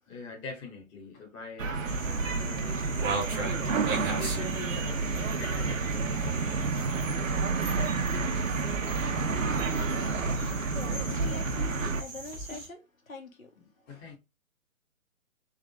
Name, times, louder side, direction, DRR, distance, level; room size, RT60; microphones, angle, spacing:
voice 1, 0.1-6.9 9.8-10.0 13.6-14.2, left 4 dB, 15° left, 1.0 m, -44 dB
sound 1, 1.6-12.0, right 4 dB, 70° right, 0.9 m, -30 dB
sound 2, 1.9-12.7, right 4 dB, 15° right, 0.9 m, -39 dB
sound 3, 7.3-12.7, left 2 dB, 35° left, 1.3 m, -43 dB
voice 2, 10.7-13.5, left 3 dB, 75° left, 1.6 m, -44 dB
3.8 x 3.3 x 3.4 m
figure-of-eight pair, 135°, 41 cm